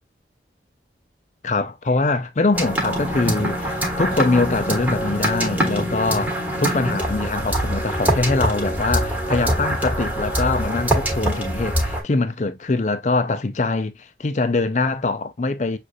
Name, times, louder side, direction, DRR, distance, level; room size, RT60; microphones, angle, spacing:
voice 1, 1.4-6.3 6.6-15.8, left 3 dB, 40° left, 0.5 m, -23 dB
sound 1, 2.5-12.0, equal, 10° right, 1.1 m, -24 dB
6.3 x 2.6 x 2.6 m
head